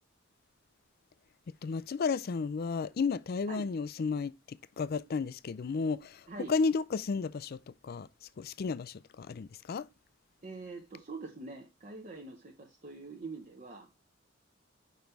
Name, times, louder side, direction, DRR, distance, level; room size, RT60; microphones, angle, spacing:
voice 1, 1.6-9.9, left 4 dB, 50° left, 0.4 m, -33 dB
voice 2, 10.4-13.9, right 3 dB, 40° right, 0.9 m, -44 dB
5.5 x 5.2 x 4.5 m
head